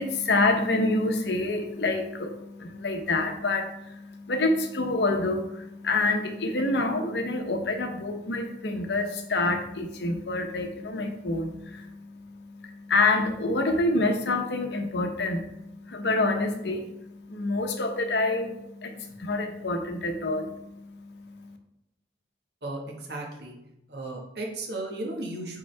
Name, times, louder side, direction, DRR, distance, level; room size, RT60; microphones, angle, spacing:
voice 1, 0.0-21.6, left 2 dB, 75° left, 5 dB, 0.9 m, -27 dB
voice 2, 22.6-23.5 23.9-25.6, right 2 dB, 70° right, 1 dB, 1.4 m, -35 dB
8.7 x 3.8 x 3.3 m, 0.86 s
head